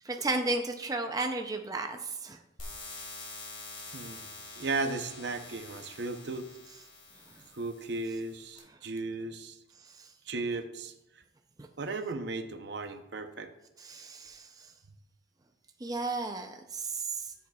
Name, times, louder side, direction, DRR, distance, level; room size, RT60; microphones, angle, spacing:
voice 1, 0.0-2.4 4.5-4.6 7.3-7.4 9.8-10.1 11.6-11.7 13.8-14.7 15.8-17.3, right 3 dB, 20° right, 4 dB, 0.5 m, -34 dB
sound 1, 2.6-8.6, left 3 dB, 30° left, 2.2 m, -46 dB
voice 2, 3.9-4.3 4.6-6.5 7.5-9.6 10.3-11.2 11.8-13.5, right 3 dB, 60° right, 8 dB, 0.7 m, -36 dB
13.5 x 7.4 x 2.3 m, 0.89 s
head